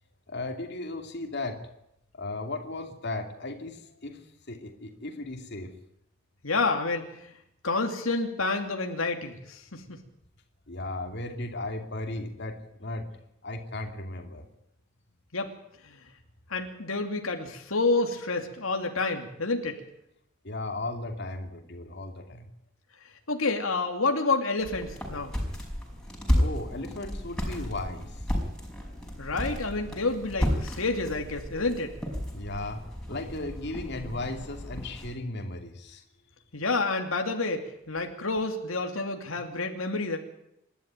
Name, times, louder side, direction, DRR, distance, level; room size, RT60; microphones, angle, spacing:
voice 1, 0.3-1.6 2.1-4.2 4.5-5.7 10.7-13.1 13.4-14.5 20.4-22.5 26.3-28.2 32.3-32.8 33.1-36.0, left 2 dB, 55° left, 4 dB, 2.8 m, -36 dB
voice 2, 6.4-7.0 7.6-10.0 15.3-15.5 15.8-16.0 16.5-19.8 23.3-25.3 29.2-31.9 36.5-40.2, left 3 dB, 85° left, 4 dB, 2.7 m, -29 dB
sound 1, 24.6-35.1, equal, 5° left, 5.3 m, -32 dB
27.5 x 12.0 x 9.2 m, 0.80 s
head